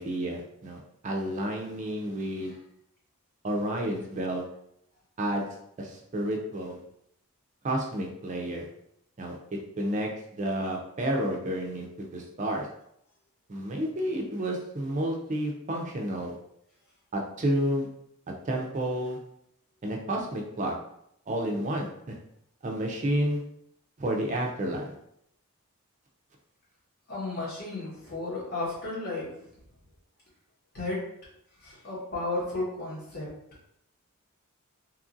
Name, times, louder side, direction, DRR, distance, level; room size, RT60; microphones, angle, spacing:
voice 1, 0.0-2.5 3.4-4.4 5.2-5.4 5.8-6.8 7.6-8.7 9.2-9.4 9.8-10.1 10.4-12.7 13.5-16.3 17.1-17.9 18.5-19.2 19.8-20.7 21.3-22.2 22.6-23.4 24.0-24.9, right 1 dB, 35° right, 0 dB, 0.4 m, -30 dB
voice 2, 27.1-29.4 30.7-31.0 31.6-33.3, left 2 dB, 40° left, -7 dB, 1.1 m, -33 dB
2.9 x 2.5 x 2.5 m, 0.74 s
head